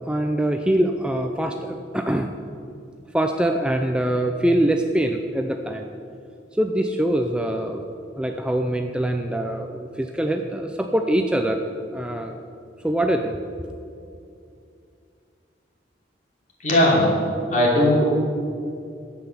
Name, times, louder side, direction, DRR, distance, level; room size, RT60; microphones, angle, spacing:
voice 1, 0.0-2.3 3.1-5.9 6.5-7.8 8.2-11.7 11.9-12.4 12.8-13.4, right 1 dB, 5° right, 4 dB, 0.5 m, -23 dB
voice 2, 16.6-17.1 17.5-18.1, left 1 dB, 45° left, -3 dB, 3.0 m, -17 dB
10.0 x 8.2 x 7.0 m, 2.5 s
head